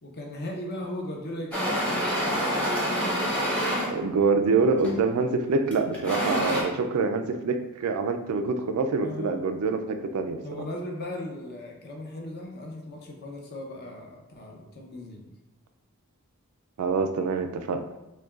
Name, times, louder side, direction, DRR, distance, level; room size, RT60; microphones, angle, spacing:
voice 1, 0.0-3.1 6.4-6.9 9.0-9.3 10.4-15.2, left 1 dB, 45° left, 0 dB, 0.7 m, -38 dB
sound 1, 1.5-3.9 4.8-5.1 5.7-6.6, equal, 5° left, 0.9 m, -26 dB
voice 2, 3.9-10.4 16.8-17.8, right 4 dB, 80° right, 7 dB, 0.4 m, -25 dB
6.2 x 2.2 x 2.4 m, 0.99 s
head